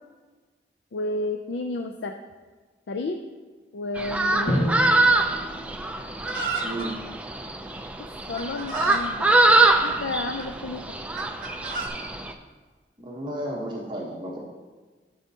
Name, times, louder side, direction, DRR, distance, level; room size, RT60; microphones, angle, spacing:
voice 1, 0.9-2.1 2.9-3.2 3.7-4.6 8.3-9.4 9.8-10.8, left 2 dB, 80° left, 5 dB, 0.5 m, -31 dB
sound 1, 4.0-12.3, right 2 dB, 5° right, 0.4 m, -24 dB
Drum, 4.5-6.4, equal, 50° left, 1.6 m, -29 dB
Chicken rooster, 6.3-6.9 7.8-7.9 8.4-9.1 9.8-10.5 11.2-11.9, right 5 dB, 50° right, 1.1 m, -33 dB
voice 2, 13.0-14.4, right 1 dB, 25° right, -3 dB, 1.1 m, -33 dB
13.0 x 6.3 x 2.8 m, 1.4 s
head